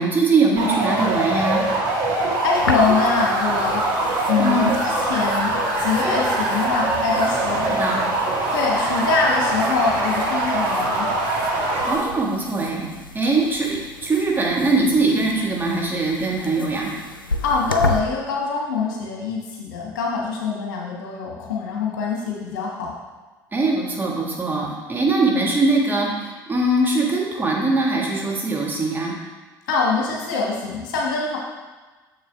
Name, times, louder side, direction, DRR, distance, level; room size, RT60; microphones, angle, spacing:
voice 1, 0.0-1.6 4.4-4.7 7.7-8.0 11.9-16.9 23.5-29.2, right 3 dB, 20° right, -3 dB, 1.7 m, -21 dB
sound 1, 0.6-12.0, right 2 dB, 55° right, 1.7 m, -23 dB
voice 2, 2.4-3.8 4.3-7.8 8.5-11.1 17.4-22.9 29.7-31.4, left 4 dB, 65° left, -2 dB, 1.4 m, -24 dB
sound 2, 2.5-18.0, left 3 dB, 85° left, 0.4 m, -34 dB
6.6 x 6.5 x 3.5 m, 1.2 s
figure-of-eight pair, 60°, 11 cm